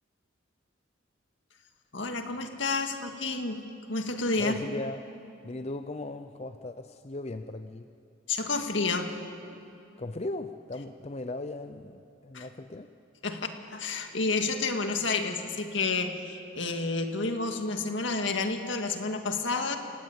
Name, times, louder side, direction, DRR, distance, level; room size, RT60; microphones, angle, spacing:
voice 1, 1.9-3.6 3.9-4.6 8.3-9.1 12.3-12.5 13.2-19.8, left 3 dB, 75° left, 5 dB, 2.0 m, -30 dB
voice 2, 4.4-5.1 5.4-7.9 10.0-12.9, left 2 dB, 35° left, 9 dB, 0.6 m, -37 dB
29.0 x 17.0 x 8.7 m, 2.6 s
head